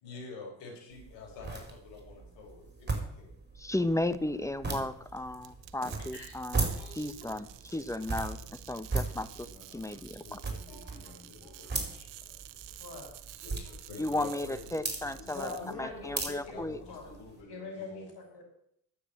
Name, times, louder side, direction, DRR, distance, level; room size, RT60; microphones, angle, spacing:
voice 1, 0.0-2.6 3.2-3.3 9.3-9.8 10.1-12.1 13.4-16.0 16.4-18.1, left 4 dB, 80° left, 2 dB, 4.6 m, -48 dB
sound 1, 0.9-17.4, right 3 dB, 25° right, 5.2 m, -39 dB
voice 2, 3.6-9.5 9.7-10.4 14.0-16.8, left 1 dB, 5° left, 14 dB, 1.0 m, -35 dB
sound 2, 5.4-15.7, right 16 dB, 80° right, 1.0 m, -50 dB
voice 3, 5.8-7.2 10.7-11.6 12.8-13.4 15.2-17.2 17.5-18.4, left 3 dB, 60° left, 2 dB, 6.3 m, -44 dB
9.9 x 8.4 x 8.7 m, 0.73 s
supercardioid pair, 65°, 43 cm